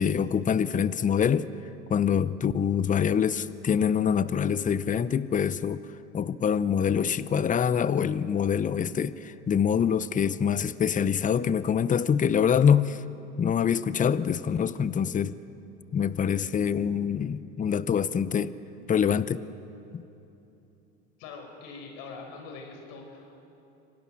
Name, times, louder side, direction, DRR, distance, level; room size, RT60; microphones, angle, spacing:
voice 1, 0.0-1.5 1.9-5.8 6.1-13.0 13.4-15.4 15.9-18.5 18.9-19.5 19.9-20.0, left 7 dB, 20° left, 16 dB, 0.7 m, -25 dB
voice 2, 21.2-23.4, left 4 dB, 65° left, 3 dB, 5.1 m, -43 dB
25.5 x 17.5 x 6.3 m, 2.9 s
hypercardioid pair, 90°, 35 cm